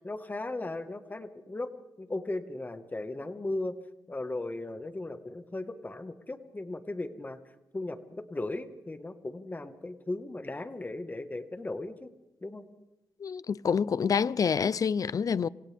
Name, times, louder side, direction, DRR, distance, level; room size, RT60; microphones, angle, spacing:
voice 1, 0.0-1.7 2.0-3.8 4.1-7.4 7.7-12.1 12.4-12.7, left 2 dB, 20° left, 1.6 m, -37 dB
voice 2, 13.2-15.5, left 6 dB, 50° left, 0.6 m, -27 dB
27.5 x 26.0 x 3.6 m
cardioid pair, 95°, 8 cm